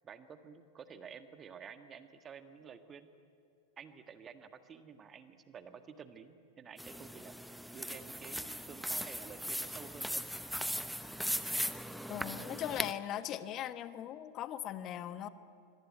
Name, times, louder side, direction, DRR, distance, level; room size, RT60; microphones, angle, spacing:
voice 1, 0.0-3.1 3.8-10.2, right 6 dB, 25° right, 8 dB, 1.6 m, -51 dB
sound 1, 6.8-12.9, equal, ahead, 0.9 m, -38 dB
voice 2, 12.1-15.3, left 11 dB, 35° left, 12 dB, 1.2 m, -39 dB
25.5 x 23.0 x 9.3 m, 2.4 s
figure-of-eight pair, 90°, 0 cm